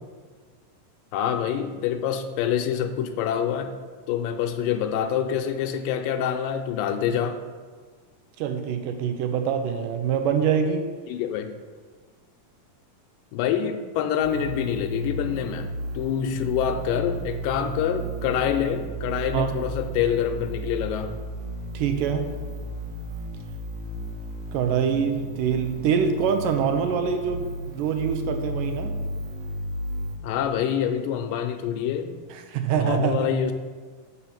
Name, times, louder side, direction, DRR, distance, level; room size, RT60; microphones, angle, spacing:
voice 1, 1.1-3.7 4.1-7.4 11.1-11.5 13.3-15.7 16.0-21.1 30.2-32.1 32.7-33.5, left 9 dB, 80° left, 7 dB, 2.2 m, -26 dB
voice 2, 8.4-10.8 19.3-19.5 21.7-22.3 24.5-28.9 32.3-33.3, right 7 dB, 80° right, 6 dB, 2.2 m, -25 dB
sound 1, 14.2-30.1, right 1 dB, 55° right, 2.4 m, -34 dB
6.9 x 5.6 x 7.2 m, 1.5 s
omnidirectional pair, 4.0 m